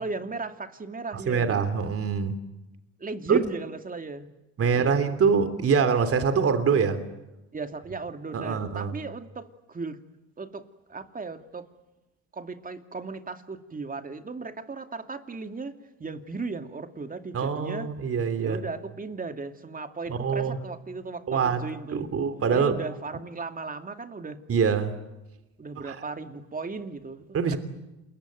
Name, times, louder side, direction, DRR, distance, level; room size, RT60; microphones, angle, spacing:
voice 1, 0.0-1.6 3.0-4.3 4.6-5.1 7.5-10.0 10.4-11.7 12.3-17.9 18.4-22.1 22.5-24.4 25.6-27.6, right 4 dB, 25° right, 7 dB, 2.4 m, -36 dB
voice 2, 1.1-2.4 3.3-3.4 4.6-7.0 8.3-9.0 17.3-18.6 20.2-20.6 21.3-21.6 21.9-22.7 24.5-24.9 25.8-26.0 27.3-27.6, right 6 dB, 40° right, 10 dB, 3.1 m, -24 dB
28.0 x 22.5 x 9.4 m, 0.99 s
supercardioid pair, 75°, 34 cm